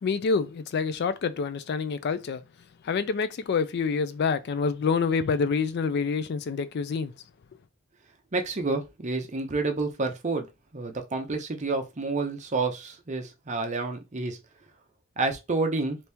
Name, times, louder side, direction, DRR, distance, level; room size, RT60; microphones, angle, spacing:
voice 1, 0.0-2.4 2.8-7.1, left 5 dB, 55° left, 0.3 m, -27 dB
voice 2, 8.3-10.5 10.7-14.4 15.2-16.0, right 3 dB, 35° right, 0.6 m, -29 dB
2.9 x 2.7 x 3.4 m
head